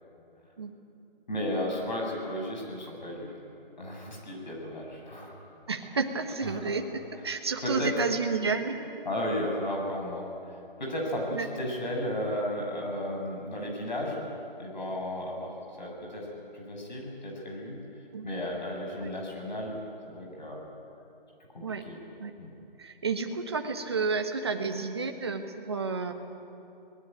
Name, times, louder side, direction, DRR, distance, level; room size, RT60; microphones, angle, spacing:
voice 1, 1.3-3.3 3.8-5.3 6.4-6.7 7.6-7.9 9.1-14.2 14.6-17.8 18.2-19.8 20.1-20.6 21.5-22.0 22.4-22.5, left 1 dB, 50° left, 0 dB, 7.3 m, -34 dB
voice 2, 5.7-8.8 11.3-11.5 18.1-18.3 21.6-21.8 22.2-22.3 22.8-26.1, right 4 dB, 25° right, 5 dB, 1.4 m, -31 dB
23.5 x 20.0 x 9.1 m, 2.8 s
hypercardioid pair, 175°, 29 cm